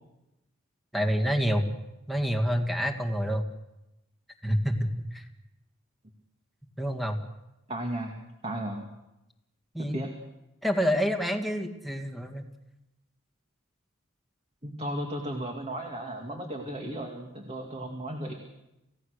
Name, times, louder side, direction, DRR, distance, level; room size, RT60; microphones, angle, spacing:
voice 1, 0.9-1.7 2.1-3.4 4.4-5.2 6.8-7.2 9.7-10.0 10.6-12.4, equal, ahead, 3 dB, 1.9 m, -27 dB
voice 2, 7.7-8.2 8.4-8.9 9.8-10.1 14.6-18.3, right 1 dB, 30° right, 2 dB, 2.3 m, -35 dB
28.5 x 17.0 x 6.6 m, 0.94 s
head